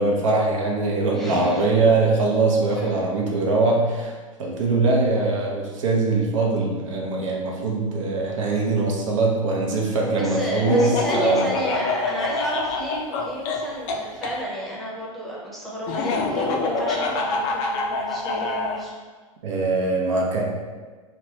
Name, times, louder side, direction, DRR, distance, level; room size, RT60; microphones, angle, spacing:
voice 1, 0.0-4.1 4.4-11.5 19.4-20.4, right 3 dB, 65° right, -1 dB, 0.6 m, -22 dB
voice 2, 1.1-1.6 2.7-3.1 10.2-18.9, equal, ahead, -6 dB, 0.7 m, -31 dB
Laughter, 10.7-14.3 15.9-18.8, left 3 dB, 40° left, 0.4 m, -26 dB
3.0 x 2.2 x 2.8 m, 1.4 s
hypercardioid pair, 105°, 17 cm